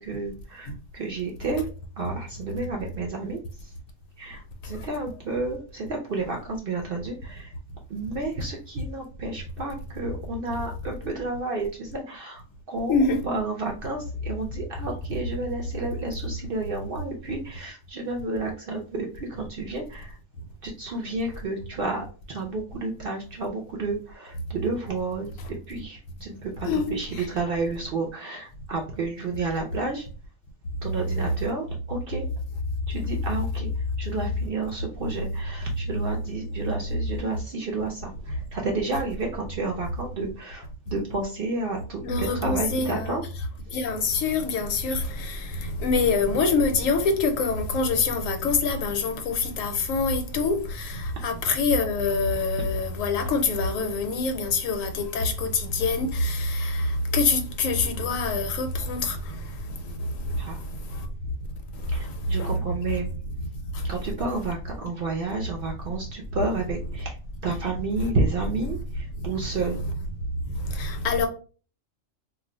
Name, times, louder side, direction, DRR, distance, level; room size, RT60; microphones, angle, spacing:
voice 1, 0.0-1.6 2.0-3.4 4.2-7.5 7.9-12.4 12.7-12.9 13.3-20.1 20.6-30.1 30.8-32.2 32.9-33.7 34.0-43.2 60.4-60.6 61.9-63.1 63.9-67.1 67.4-69.8, right 3 dB, 65° right, 0.5 m, -31 dB
voice 2, 12.9-13.2 26.6-27.3 42.0-43.1 43.7-59.4 62.4-62.6 68.0-68.1 69.6-69.7 70.7-71.3, left 4 dB, 80° left, 1.0 m, -25 dB
2.4 x 2.1 x 3.8 m
omnidirectional pair, 1.4 m